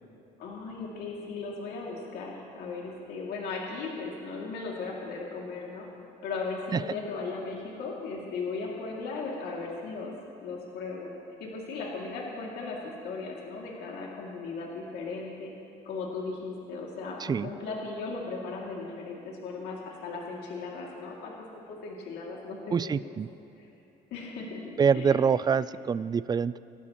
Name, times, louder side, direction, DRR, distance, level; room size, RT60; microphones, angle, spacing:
voice 1, 0.4-5.9 6.2-10.1 10.4-11.1 11.4-12.8 13.0-15.5 15.8-21.3 21.7-23.2 23.6-23.7 24.1-25.2, left 4 dB, 75° left, -3 dB, 2.6 m, -37 dB
voice 2, 22.7-23.3 24.8-26.6, right 6 dB, 25° right, 17 dB, 0.3 m, -25 dB
26.5 x 12.5 x 3.1 m, 2.9 s
cardioid pair, 110°, 17 cm